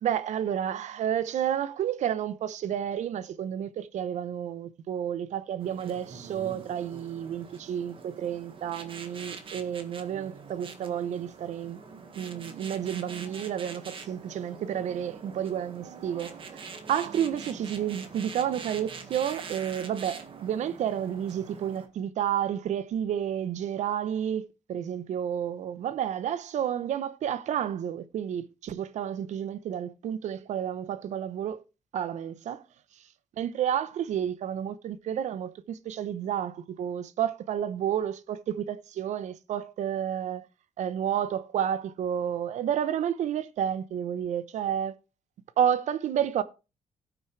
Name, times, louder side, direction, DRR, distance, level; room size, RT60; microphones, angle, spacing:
voice 1, 0.0-11.8 12.2-16.6 16.9-31.6 31.9-32.6 33.4-40.5 40.8-45.0 45.6-46.4, right 9 dB, 70° right, 0.8 m, -31 dB
sound 1, 5.6-21.9, right 5 dB, 45° right, 1.6 m, -44 dB
17.5 x 6.3 x 3.3 m
cardioid pair, 125°, 13 cm